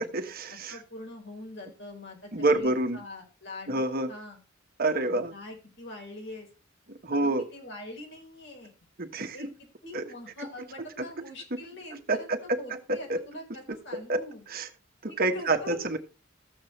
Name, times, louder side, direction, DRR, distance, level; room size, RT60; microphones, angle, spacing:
voice 1, 0.0-0.8 2.3-3.0 3.7-4.1 4.8-5.3 6.9-7.4 9.0-9.5 9.9-10.0 11.0-11.1 12.1-13.2 13.9-14.2 14.5-14.7 15.0-16.0, right 2 dB, 50° right, 6 dB, 1.3 m, -28 dB
voice 2, 0.7-4.4 5.0-6.5 7.1-8.7 9.3-9.4 9.8-14.4 15.1-16.0, left 1 dB, 60° left, 1 dB, 4.7 m, -43 dB
14.5 x 7.6 x 3.2 m, 0.34 s
head